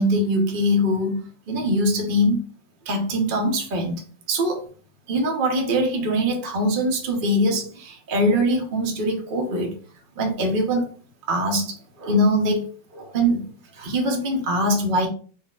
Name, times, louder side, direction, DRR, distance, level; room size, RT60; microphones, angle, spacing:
voice 1, 0.0-2.4 2.9-4.0 4.3-4.6 5.1-9.7 10.2-10.9 11.3-13.4 13.7-15.1, equal, 45° right, 1 dB, 0.7 m, -22 dB
4.0 x 3.1 x 2.4 m, 0.41 s
omnidirectional pair, 2.0 m